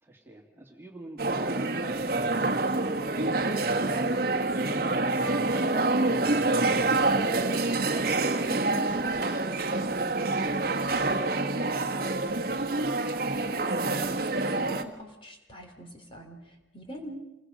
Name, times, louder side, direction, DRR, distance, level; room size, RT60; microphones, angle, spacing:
voice 1, 0.0-5.1, right 1 dB, 10° right, 0 dB, 2.5 m, -46 dB
sound 1, 1.2-14.8, right 2 dB, 50° right, 1.4 m, -27 dB
voice 2, 8.5-8.9 13.3-17.4, equal, 25° left, 3 dB, 3.1 m, -43 dB
28.5 x 22.5 x 5.2 m, 0.97 s
head